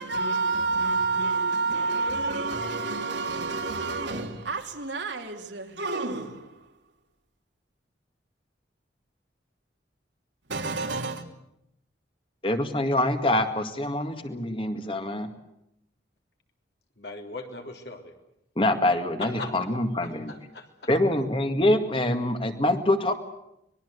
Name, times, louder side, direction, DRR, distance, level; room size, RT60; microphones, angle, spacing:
voice 1, 0.0-6.7 10.5-11.2, right 3 dB, 70° right, 2.9 m, -29 dB
voice 2, 12.4-15.3 18.6-20.3 20.9-23.1, left 1 dB, 30° left, 2.0 m, -25 dB
voice 3, 17.0-18.1 19.2-19.5 20.0-20.7, left 2 dB, 60° left, 3.4 m, -39 dB
25.0 x 21.0 x 8.1 m
head